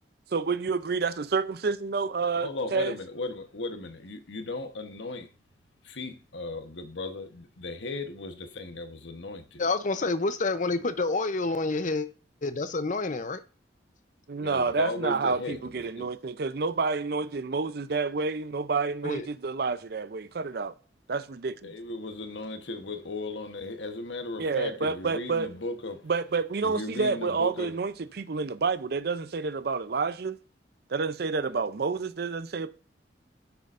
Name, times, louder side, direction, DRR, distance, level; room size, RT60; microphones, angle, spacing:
voice 1, 0.3-2.9 14.3-20.7 21.1-21.7 24.4-25.5 26.1-30.4 30.9-32.7, right 4 dB, 60° right, 0.5 m, -29 dB
voice 2, 2.3-5.3 5.8-9.6 10.7-10.8 14.4-16.1 21.6-26.1 26.6-27.7, left 2 dB, 85° left, 1.1 m, -36 dB
voice 3, 9.6-12.0 12.4-13.4 19.0-19.3, left 3 dB, 45° left, 0.7 m, -28 dB
9.6 x 7.0 x 2.6 m
head